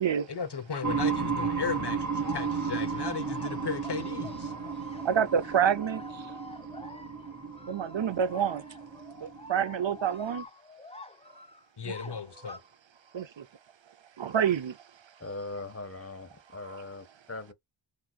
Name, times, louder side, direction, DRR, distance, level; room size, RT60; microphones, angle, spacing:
voice 1, 0.3-4.5 11.8-12.6, left 6 dB, 65° left, 0.8 m, -35 dB
sound 1, 0.8-10.4, right 5 dB, 40° right, 1.1 m, -34 dB
sound 2, 2.2-12.6, left 2 dB, 15° left, 0.5 m, -48 dB
voice 2, 5.0-6.4 7.7-8.6 9.2-10.4 11.8-11.9 13.1-13.4 14.2-14.8 16.5-16.8, right 8 dB, 85° right, 0.6 m, -28 dB
voice 3, 15.2-17.5, left 2 dB, 30° left, 1.1 m, -40 dB
6.1 x 2.8 x 2.3 m
wide cardioid pair, 45°, 44 cm